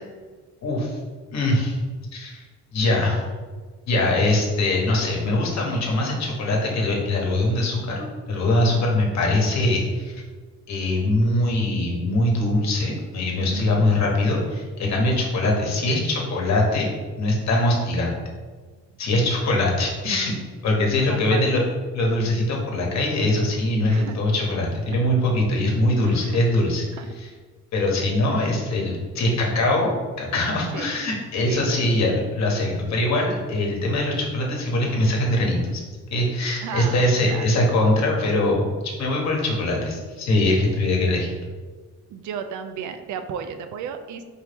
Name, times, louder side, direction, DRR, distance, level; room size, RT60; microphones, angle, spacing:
voice 1, 0.6-1.0 1.3-1.8 2.1-2.4 2.7-3.2 3.9-10.2 10.7-16.9 17.2-18.2 19.0-20.3 20.6-21.6 21.9-26.9 27.2-27.3 27.7-29.9 30.2-35.8 36.1-38.6 39.0-41.3, left 1 dB, 60° left, -1 dB, 1.2 m, -22 dB
voice 2, 13.5-14.1 21.1-21.7 23.9-24.2 26.0-26.4 26.9-27.1 28.3-28.4 30.7-31.0 31.4-31.8 36.6-37.5 42.1-44.2, right 7 dB, 75° right, 9 dB, 0.5 m, -34 dB
4.5 x 2.8 x 3.4 m, 1.4 s
cardioid pair, 90°, 30 cm